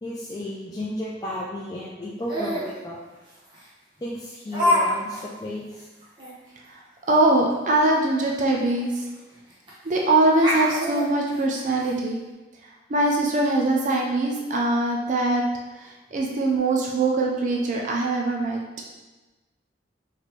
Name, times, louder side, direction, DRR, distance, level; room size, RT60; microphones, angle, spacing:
voice 1, 0.0-3.0 4.0-5.9, left 1 dB, 20° left, -6 dB, 0.4 m, -33 dB
Laughter, 2.3-2.7 3.5-3.6 4.5-4.8 5.1-5.2 5.7-5.8 6.2-6.3 8.3-8.4 8.6-8.7 9.7-9.9 10.3-11.9, left 1 dB, 25° right, 1.2 m, -25 dB
voice 2, 7.1-9.0 9.8-12.2 12.9-15.4 15.8-18.6, right 2 dB, 40° right, -1 dB, 0.4 m, -22 dB
4.1 x 3.2 x 3.1 m, 1.2 s
head